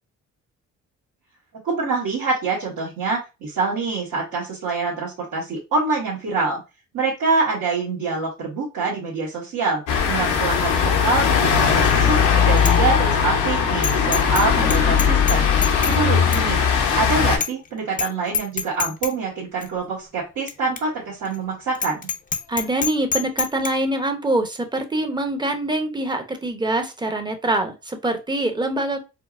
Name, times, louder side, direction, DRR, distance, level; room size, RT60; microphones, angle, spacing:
voice 1, 1.6-6.6 6.9-15.5 15.9-16.6 16.9-22.1, right 4 dB, 75° right, -8 dB, 1.5 m, -25 dB
sound 1, 9.9-17.4, left 7 dB, 85° left, 0.9 m, -19 dB
Bicycle bell, 11.8-12.2 12.6-12.8 13.1-13.2 13.8-14.5 14.7-16.0 16.3-16.4 16.9-17.0 17.4-17.7 17.9-18.1 18.3-19.1 19.6-19.7 20.5-20.6 20.8-20.9 21.3-21.4 21.8-23.7, left 6 dB, 30° left, 0.5 m, -26 dB
voice 2, 22.5-29.0, right 1 dB, 15° right, 5 dB, 0.7 m, -24 dB
4.4 x 2.0 x 2.4 m, 0.27 s
cardioid pair, 90°, 30 cm